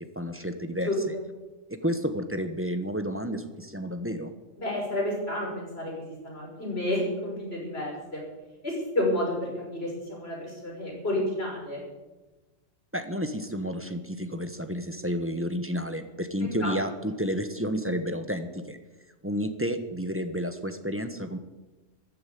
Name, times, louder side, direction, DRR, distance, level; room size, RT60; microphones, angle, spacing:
voice 1, 0.1-1.1 1.7-4.3 12.9-18.8 19.2-21.4, equal, 10° right, 8 dB, 1.1 m, -31 dB
voice 2, 0.8-1.2 4.6-8.2 8.6-11.8 16.6-16.7, left 1 dB, 50° left, -2 dB, 6.2 m, -30 dB
14.5 x 12.0 x 8.5 m, 1.1 s
omnidirectional pair, 1.3 m